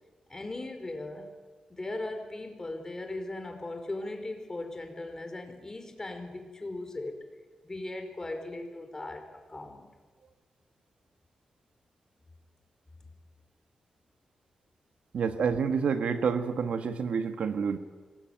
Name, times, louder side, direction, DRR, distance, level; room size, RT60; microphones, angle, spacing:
voice 1, 0.3-1.3 1.7-7.2 7.6-9.9, left 2 dB, 25° left, 6 dB, 4.8 m, -38 dB
voice 2, 15.1-17.8, right 6 dB, 80° right, 8 dB, 1.7 m, -28 dB
25.5 x 20.5 x 9.3 m, 1.4 s
cardioid pair, 85°, 2 cm